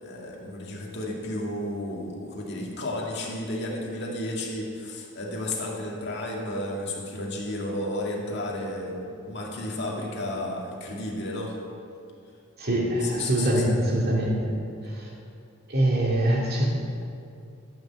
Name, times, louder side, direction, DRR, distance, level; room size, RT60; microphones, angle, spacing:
voice 1, 0.0-11.5 13.0-13.8, left 1 dB, 50° left, -2 dB, 2.2 m, -32 dB
voice 2, 12.6-14.6 14.8-15.1 15.7-16.7, right 1 dB, 45° right, -3 dB, 2.5 m, -24 dB
14.5 x 6.4 x 7.5 m, 2.4 s
head